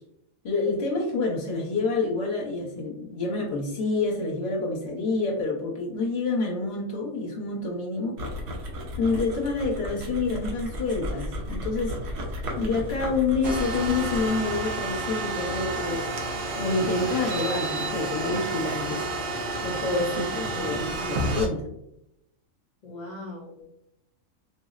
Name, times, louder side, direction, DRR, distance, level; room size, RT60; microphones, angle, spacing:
voice 1, 0.4-8.2 9.0-12.0 12.5-16.1 16.6-19.1 19.6-21.6, left 3 dB, 55° left, -2 dB, 1.0 m, -28 dB
sound 1, 8.2-14.5, equal, 85° right, 1.2 m, -34 dB
sound 2, 13.4-21.5, right 2 dB, 65° right, 0.5 m, -30 dB
voice 2, 19.9-21.0 22.8-23.7, left 2 dB, 90° left, -2 dB, 0.3 m, -41 dB
4.0 x 2.0 x 2.4 m, 0.82 s
omnidirectional pair, 1.5 m